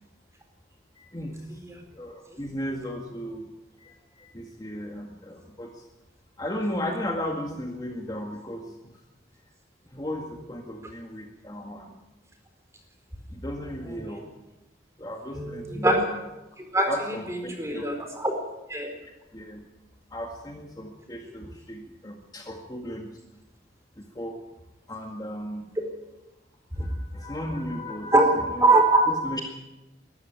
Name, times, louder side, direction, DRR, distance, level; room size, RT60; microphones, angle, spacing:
voice 1, 1.0-1.6 1.9-3.5 3.8-5.9 6.4-8.9 9.9-12.0 13.3-14.3 15.0-16.0 16.9-17.9 19.3-19.6 20.1-23.1 24.0-24.4 24.9-25.7 26.7-28.1 28.5-28.7 29.1-29.4, left 1 dB, 20° left, 1 dB, 1.9 m, -35 dB
voice 2, 15.3-16.0 16.6-16.9 17.3-18.3 18.7-18.9 26.8-26.9 28.1-28.2 28.6-29.1, right 2 dB, 15° right, 4 dB, 4.2 m, -22 dB
21.5 x 13.0 x 9.3 m, 1.0 s
head